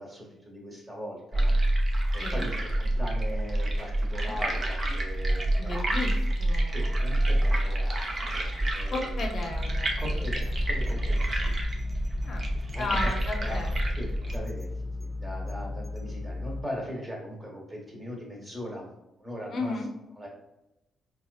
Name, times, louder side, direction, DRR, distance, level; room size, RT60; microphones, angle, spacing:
voice 1, 0.0-1.6 2.1-5.7 6.7-7.9 8.7-9.2 10.0-11.5 12.7-13.1 13.4-13.6 14.0-14.7 15.0-18.9 19.2-19.7 20.2-20.3, equal, 20° right, -2 dB, 1.1 m, -39 dB
sound 1, 1.3-14.4, right 1 dB, 35° right, 0.6 m, -28 dB
voice 2, 5.6-6.8 8.9-10.2 12.2-13.8 19.5-19.9, left 3 dB, 55° left, 1 dB, 0.6 m, -34 dB
sound 2, 9.5-16.6, left 2 dB, 5° left, 0.4 m, -35 dB
4.1 x 2.4 x 2.4 m, 0.91 s
cardioid pair, 90°, 0 cm